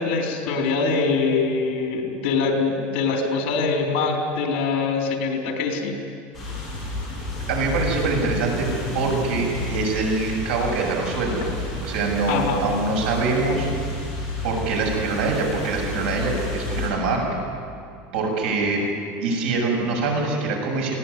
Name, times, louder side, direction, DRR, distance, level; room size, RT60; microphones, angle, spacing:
voice 1, 0.0-6.0 12.3-12.6, left 4 dB, 60° left, 1 dB, 4.1 m, -23 dB
sound 1, 6.3-16.9, left 2 dB, ahead, 7.5 m, -31 dB
voice 2, 7.5-11.5 11.8-13.7 14.4-17.2 18.1-18.8 19.2-21.0, right 3 dB, 80° right, 1 dB, 7.0 m, -24 dB
22.0 x 17.5 x 9.9 m, 2.4 s
cardioid pair, 175°, 6 cm